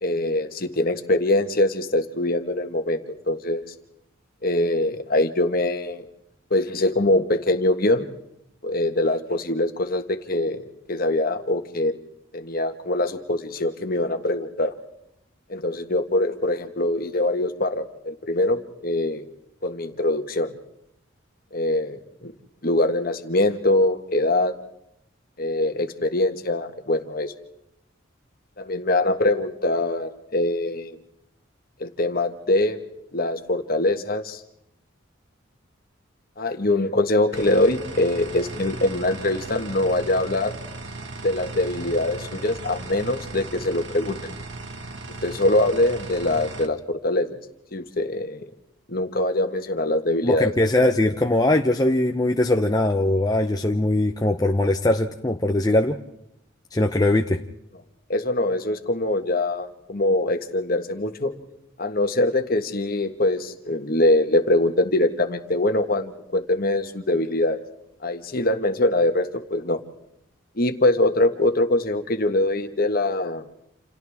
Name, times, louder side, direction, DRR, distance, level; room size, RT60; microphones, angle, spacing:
voice 1, 0.0-3.0 3.3-3.6 4.4-6.0 6.5-8.0 8.6-11.9 12.3-14.7 15.5-19.2 19.6-20.5 21.5-22.3 22.6-24.5 25.4-27.3 28.6-31.0 31.8-32.8 33.1-34.4 36.4-40.5 41.2-44.3 45.2-47.4 47.7-48.4 48.9-50.5 58.1-61.3 61.8-67.6 68.0-69.8 70.6-73.5, left 1 dB, 45° left, 7 dB, 1.6 m, -23 dB
sound 1, 37.3-46.7, right 2 dB, 60° right, 1.7 m, -37 dB
voice 2, 50.2-56.0 56.7-57.4, left 1 dB, 20° left, 3 dB, 0.8 m, -21 dB
29.0 x 28.5 x 3.6 m, 0.81 s
head